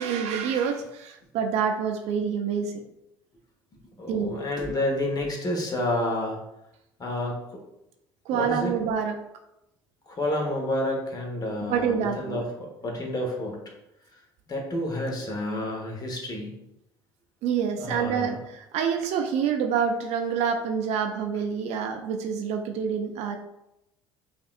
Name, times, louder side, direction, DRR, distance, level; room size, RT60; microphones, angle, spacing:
voice 1, 0.0-2.8 4.1-4.4 8.3-9.2 11.6-12.4 17.4-23.4, right 7 dB, 60° right, 4 dB, 0.5 m, -27 dB
voice 2, 4.0-6.4 7.0-7.4 8.3-8.8 10.1-13.6 14.5-16.5 17.8-18.4, left 1 dB, 30° left, 1 dB, 1.2 m, -29 dB
5.4 x 2.6 x 2.5 m, 0.86 s
hypercardioid pair, 65°, 13 cm